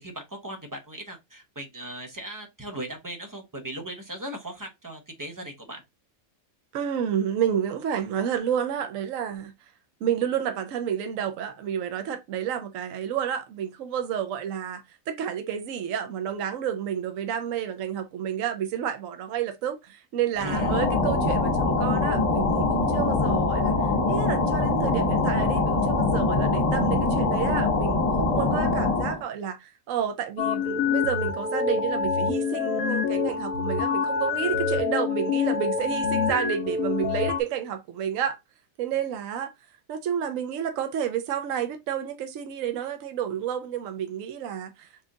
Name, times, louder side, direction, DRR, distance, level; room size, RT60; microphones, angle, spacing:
voice 1, 0.0-5.8 20.4-20.7, right 1 dB, 20° right, 0.6 m, -38 dB
voice 2, 6.7-9.5 10.0-23.7 24.1-38.4 38.8-39.5 39.9-45.0, right 9 dB, 70° right, 1.0 m, -30 dB
sound 1, 20.4-29.2, left 3 dB, 60° left, 1.6 m, -23 dB
sound 2, 30.4-37.4, left 5 dB, 80° left, 1.2 m, -26 dB
4.3 x 2.4 x 3.7 m
omnidirectional pair, 1.4 m